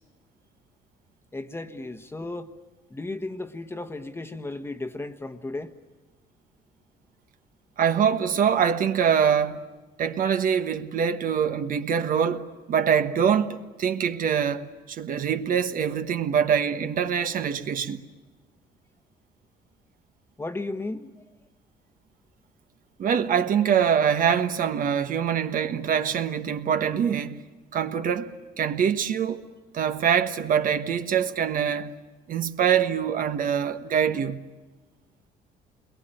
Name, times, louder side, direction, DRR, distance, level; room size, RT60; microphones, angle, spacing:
voice 1, 1.3-2.5 2.9-5.7 20.4-21.1, left 2 dB, 15° left, 1.3 m, -34 dB
voice 2, 7.8-9.6 10.0-18.0 23.0-27.4 27.7-29.5 29.7-32.0 32.3-34.5, right 8 dB, 55° right, 1.4 m, -24 dB
28.5 x 22.5 x 9.1 m
cardioid pair, 110°, 17 cm